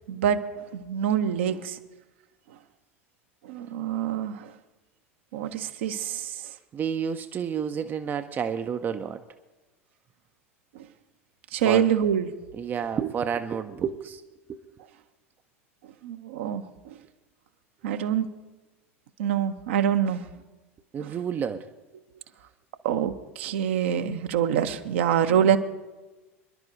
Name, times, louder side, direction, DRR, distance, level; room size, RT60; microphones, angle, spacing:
voice 1, 0.1-0.5 0.7-1.8 3.5-4.5 5.3-6.3 11.5-12.3 16.0-16.6 17.8-18.3 19.2-20.2 21.0-21.1 22.8-25.6, right 9 dB, 60° right, 8 dB, 0.8 m, -25 dB
voice 2, 6.7-9.2 11.6-11.9 12.5-14.2 14.5-14.6 20.9-21.7, right 7 dB, 25° right, 9 dB, 0.6 m, -30 dB
27.0 x 11.5 x 2.7 m, 1.2 s
figure-of-eight pair, 80°, 7 cm